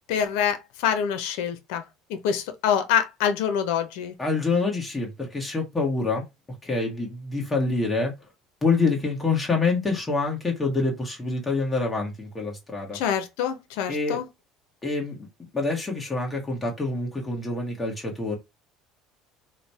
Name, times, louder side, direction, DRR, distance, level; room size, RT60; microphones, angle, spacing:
voice 1, 0.1-1.8 2.1-4.1 12.9-14.2, left 8 dB, 80° left, 0.6 m, -25 dB
voice 2, 4.2-6.2 6.6-8.1 8.6-13.0 13.9-14.2 14.8-15.3 15.5-18.3, left 3 dB, 15° left, 1.2 m, -26 dB
3.1 x 2.2 x 4.2 m
supercardioid pair, 120°, 0 cm